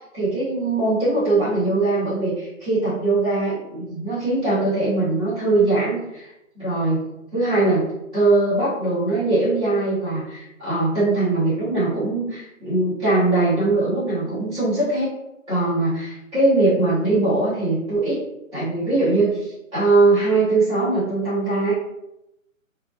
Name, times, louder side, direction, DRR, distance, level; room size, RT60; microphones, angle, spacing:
voice 1, 0.1-6.3 6.5-7.0 7.3-7.8 8.1-15.1 15.5-18.2 18.5-21.7, right 2 dB, ahead, -36 dB, 0.4 m, -21 dB
3.4 x 2.8 x 2.5 m, 0.88 s
hypercardioid pair, 145°, 41 cm